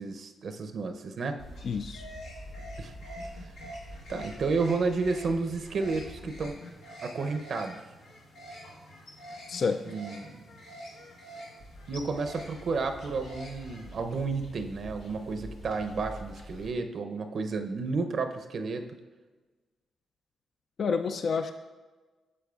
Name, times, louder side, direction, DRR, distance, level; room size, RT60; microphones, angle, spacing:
voice 1, 0.0-1.4 2.8-2.9 4.1-6.6 7.0-7.8 9.9-10.4 11.9-18.8, right 4 dB, 65° right, 7 dB, 0.6 m, -31 dB
sound 1, 1.4-16.7, equal, 85° left, 1.2 m, -45 dB
voice 2, 1.6-2.1 9.5-9.8 20.8-21.5, left 5 dB, 60° left, 8 dB, 0.3 m, -29 dB
8.4 x 7.2 x 2.4 m, 1.3 s
supercardioid pair, 45°, 0 cm